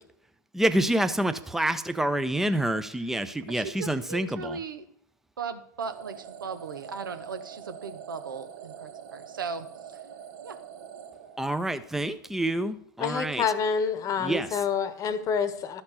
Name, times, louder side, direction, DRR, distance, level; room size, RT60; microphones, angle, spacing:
voice 1, 0.5-4.6 11.4-13.4 14.2-14.5, right 1 dB, 5° right, 11 dB, 0.6 m, -27 dB
voice 2, 3.5-4.8 5.4-10.0 10.4-10.6, right 5 dB, 80° right, 9 dB, 1.0 m, -37 dB
sound 1, 5.8-11.9, right 8 dB, 60° right, 1.1 m, -45 dB
voice 3, 13.0-15.8, left 6 dB, 30° left, 12 dB, 1.0 m, -27 dB
13.0 x 4.4 x 5.7 m, 0.70 s
hypercardioid pair, 95°, 11 cm